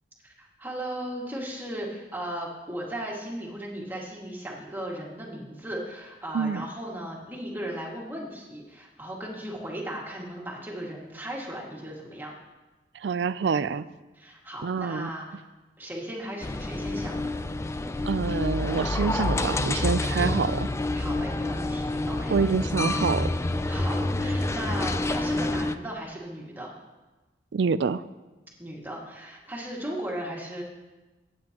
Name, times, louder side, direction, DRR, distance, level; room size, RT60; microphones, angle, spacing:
voice 1, 0.2-12.3 14.2-15.4 15.8-17.3 20.9-22.4 23.7-26.7 28.6-30.6, right 1 dB, 10° right, -3 dB, 2.1 m, -36 dB
voice 2, 13.0-13.9 14.6-15.1 18.0-20.7 22.3-23.3 27.5-28.0, right 5 dB, 75° right, 15 dB, 0.4 m, -26 dB
sound 1, 16.4-25.8, left 2 dB, 15° left, 0.4 m, -28 dB
24.0 x 9.1 x 3.0 m, 1.2 s
head